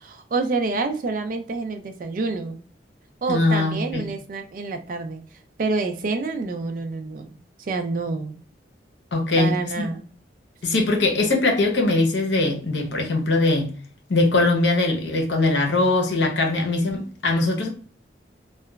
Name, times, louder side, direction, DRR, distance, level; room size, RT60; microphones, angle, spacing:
voice 1, 0.0-2.6 3.2-5.2 5.6-8.4 9.4-10.1, right 3 dB, 45° right, 0.4 m, -28 dB
voice 2, 3.3-4.0 9.1-9.9 10.6-13.7 14.1-17.7, left 2 dB, 75° left, 0.7 m, -21 dB
2.8 x 2.2 x 2.2 m
head